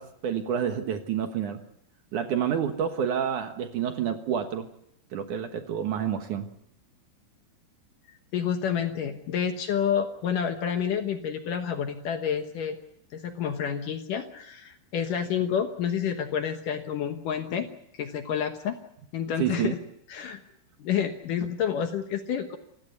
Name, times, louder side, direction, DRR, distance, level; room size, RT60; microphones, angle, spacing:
voice 1, 0.0-1.6 2.1-4.7 5.1-6.5 19.4-19.7, right 8 dB, 60° right, 7 dB, 2.3 m, -29 dB
voice 2, 8.3-12.8 13.1-18.8 19.1-19.8 20.1-20.4 20.8-22.6, left 8 dB, 65° left, 7 dB, 2.4 m, -29 dB
27.0 x 16.0 x 8.1 m, 0.74 s
omnidirectional pair, 4.8 m